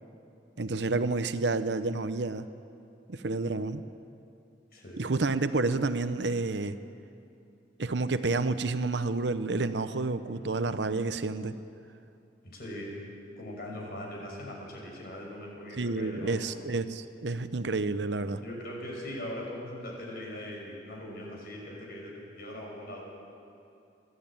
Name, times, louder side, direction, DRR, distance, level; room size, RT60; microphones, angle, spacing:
voice 1, 0.6-2.5 3.1-3.8 5.0-6.8 7.8-11.5 15.8-18.4, right 3 dB, 70° right, 11 dB, 0.8 m, -29 dB
voice 2, 4.7-5.1 12.4-12.9 13.4-16.5 18.2-23.0, left 1 dB, 55° left, -1 dB, 5.8 m, -40 dB
27.5 x 11.5 x 8.8 m, 2.6 s
head